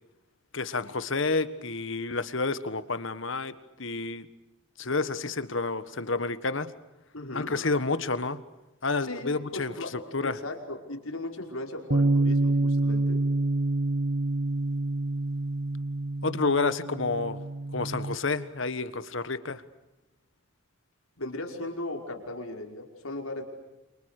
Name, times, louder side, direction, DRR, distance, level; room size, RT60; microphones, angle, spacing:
voice 1, 0.5-4.3 4.8-6.7 7.3-8.4 8.8-10.4 16.2-17.4 17.7-19.6, left 3 dB, 60° left, 13 dB, 1.5 m, -29 dB
voice 2, 7.1-7.5 9.1-9.9 10.2-13.2 21.2-23.4, left 2 dB, 85° left, 2 dB, 5.4 m, -37 dB
Bass guitar, 11.9-18.2, right 2 dB, 55° right, 1.4 m, -27 dB
29.0 x 28.0 x 6.7 m, 0.97 s
head